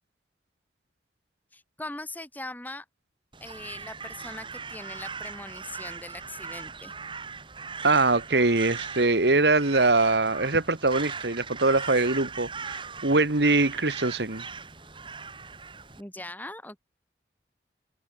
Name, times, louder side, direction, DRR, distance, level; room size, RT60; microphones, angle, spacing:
voice 1, 1.5-2.9 3.4-6.9 16.0-16.8, left 2 dB, 10° left, 5.2 m, -40 dB
Crow, 3.3-16.0, right 5 dB, 25° right, 5.9 m, -39 dB
voice 2, 7.8-14.4, right 3 dB, 75° right, 1.9 m, -23 dB
head